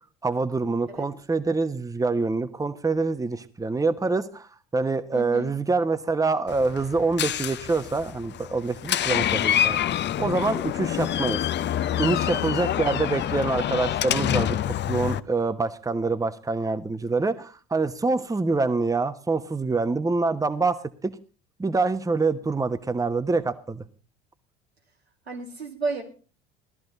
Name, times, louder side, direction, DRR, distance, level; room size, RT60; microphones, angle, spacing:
voice 1, 0.2-11.4 12.0-21.2 21.6-23.8, right 3 dB, 10° right, 12 dB, 1.1 m, -26 dB
voice 2, 5.1-5.5 12.3-12.7 13.2-13.6 25.3-26.0, right 3 dB, 90° right, 1 dB, 2.7 m, -34 dB
Door, 6.5-15.2, left 11 dB, 35° left, 0.7 m, -27 dB
17.5 x 13.0 x 4.0 m, 0.36 s
figure-of-eight pair, 60°, 31 cm